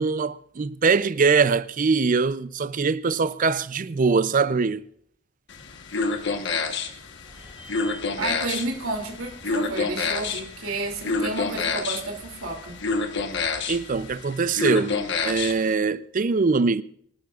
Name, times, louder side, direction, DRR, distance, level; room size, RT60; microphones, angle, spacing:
voice 1, 0.0-4.8 13.7-15.0 15.2-16.8, right 4 dB, 40° right, 0.5 m, -22 dB
sound 1, 5.5-15.7, left 4 dB, 55° left, 1.2 m, -29 dB
sound 2, 7.2-14.2, right 1 dB, 10° right, 7.1 m, -50 dB
voice 2, 8.2-12.8, right 2 dB, 90° right, 2.7 m, -31 dB
25.0 x 12.0 x 2.4 m
head